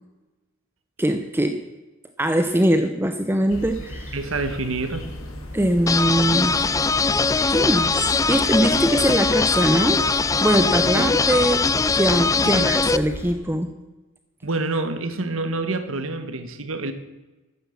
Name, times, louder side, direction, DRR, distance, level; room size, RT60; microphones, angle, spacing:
voice 1, 1.0-1.6 2.2-4.2 5.5-6.6 7.5-10.0 10.4-11.6 11.9-13.7, right 1 dB, 10° right, 7 dB, 0.7 m, -22 dB
sound 1, 3.5-13.3, equal, 65° left, 2.3 m, -36 dB
voice 2, 4.1-5.1 10.9-11.4 12.4-12.6 14.4-16.9, right 3 dB, 70° right, 9 dB, 1.5 m, -27 dB
sound 2, 5.9-13.0, left 4 dB, 15° left, 0.4 m, -21 dB
14.0 x 9.8 x 7.2 m, 1.1 s
head